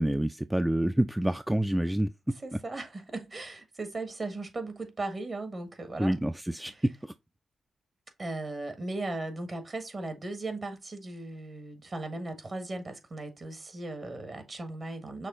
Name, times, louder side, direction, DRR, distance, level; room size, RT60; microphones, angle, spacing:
voice 1, 0.0-2.6 6.0-7.1, right 1 dB, 10° right, 0.3 m, -28 dB
voice 2, 2.4-6.2 6.7-6.8 8.2-15.3, right 2 dB, 40° right, 1.4 m, -37 dB
6.2 x 2.4 x 3.6 m
cardioid pair, 75°, 0 cm